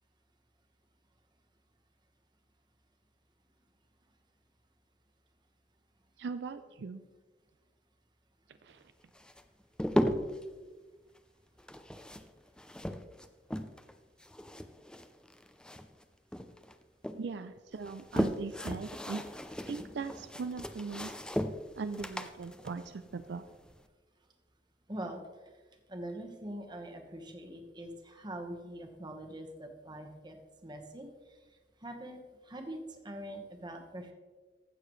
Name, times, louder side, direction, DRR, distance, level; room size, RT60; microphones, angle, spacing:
voice 1, 6.2-7.0 8.6-8.8 17.1-19.2 19.7-21.1 21.8-23.4, right 4 dB, 70° right, 10 dB, 0.4 m, -40 dB
sound 1, 9.2-10.5 11.6-13.9 14.2-16.0 16.3-17.2 17.7-23.8, equal, 5° left, 0.4 m, -36 dB
voice 2, 24.9-25.2 25.9-30.4 30.6-31.1 31.8-32.2 32.4-34.1, right 1 dB, 25° right, 4 dB, 1.2 m, -43 dB
15.0 x 6.8 x 3.1 m, 1.3 s
head